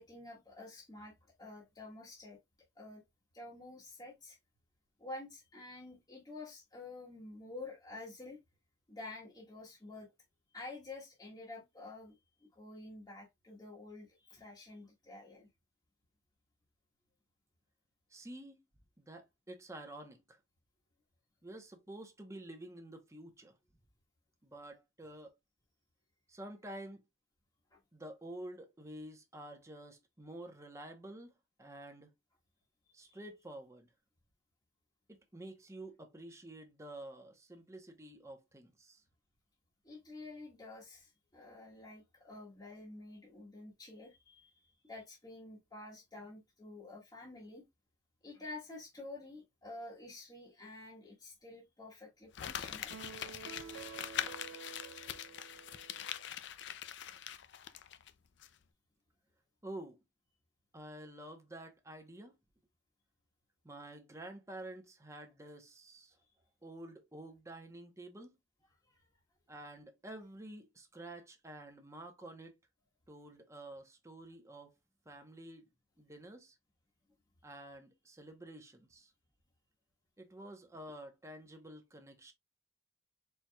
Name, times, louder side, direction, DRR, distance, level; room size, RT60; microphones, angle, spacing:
voice 1, 0.0-2.4 2.7-3.0 3.3-4.4 5.0-8.4 8.9-10.1 10.5-12.2 12.5-15.5 27.7-27.8 33.0-33.2 39.8-47.6 48.2-53.0 56.9-57.0 68.8-69.0, left 2 dB, 20° left, 1.3 m, -49 dB
voice 2, 18.1-18.6 19.0-20.4 21.4-23.6 24.4-25.3 26.3-27.0 27.9-32.1 32.9-33.9 35.1-39.0 59.6-60.0 60.7-62.4 63.6-66.2 66.6-68.4 69.5-72.5 73.1-74.7 75.0-75.7 76.0-76.6 77.4-79.1 80.2-82.3, right 1 dB, 15° right, 0.9 m, -49 dB
Crumpling crinkling, 52.3-58.1 58.4-58.5, left 9 dB, 60° left, 0.4 m, -43 dB
sound 1, 52.9-56.4, right 7 dB, 85° right, 0.4 m, -50 dB
4.5 x 4.0 x 2.3 m
head